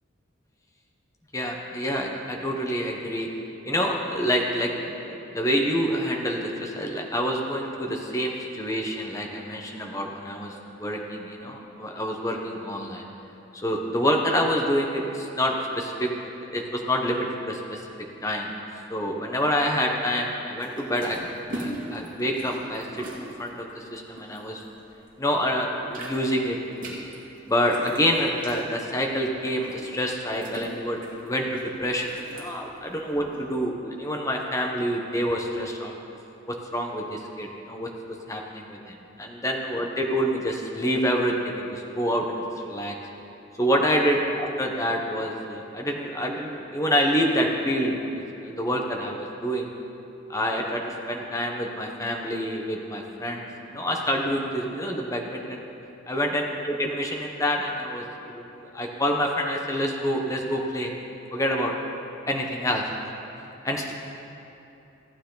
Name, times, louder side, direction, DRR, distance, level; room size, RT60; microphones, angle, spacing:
voice 1, 1.3-3.3 3.6-4.7 5.0-10.5 10.8-13.0 13.6-16.1 16.4-17.8 18.2-18.5 18.9-21.2 21.5-24.6 25.2-26.6 27.5-36.0 36.5-37.9 38.3-42.9 43.6-49.7 50.3-50.8 51.1-55.6 56.1-58.4 58.7-60.9 61.3-61.7 62.3-62.9 63.6-63.9, equal, 15° left, 1 dB, 1.0 m, -27 dB
sound 1, 20.6-25.1 25.5-33.5, right 1 dB, 45° right, 2.0 m, -40 dB
15.0 x 9.2 x 3.9 m, 2.9 s
head